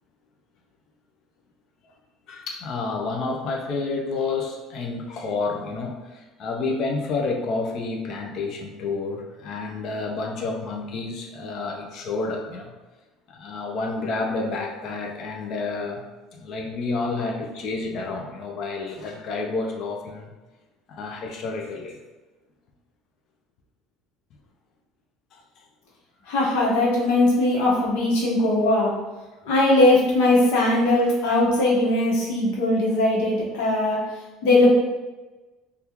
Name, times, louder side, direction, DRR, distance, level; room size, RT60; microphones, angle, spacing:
voice 1, 2.3-12.7 13.3-16.0 16.3-20.3 20.9-22.0 25.3-25.6, left 3 dB, 45° left, 2 dB, 0.5 m, -30 dB
voice 2, 26.3-28.9 29.4-34.0 34.4-34.8, left 2 dB, 90° left, -4 dB, 1.0 m, -20 dB
3.5 x 2.3 x 2.9 m, 1.2 s
cardioid pair, 155°, 0 cm